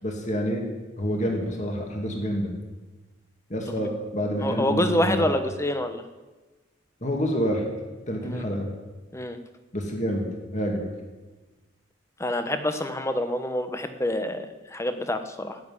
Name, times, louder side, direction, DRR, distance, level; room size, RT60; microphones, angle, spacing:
voice 1, 0.0-0.6 1.0-2.5 3.5-5.3 7.0-7.6 8.1-8.7 9.7-10.2 10.5-10.9, equal, 35° left, 1 dB, 2.5 m, -27 dB
voice 2, 4.4-6.0 8.2-8.4 9.1-9.4 12.2-15.6, left 1 dB, 15° left, 8 dB, 1.0 m, -27 dB
14.5 x 8.1 x 9.6 m, 1.2 s
head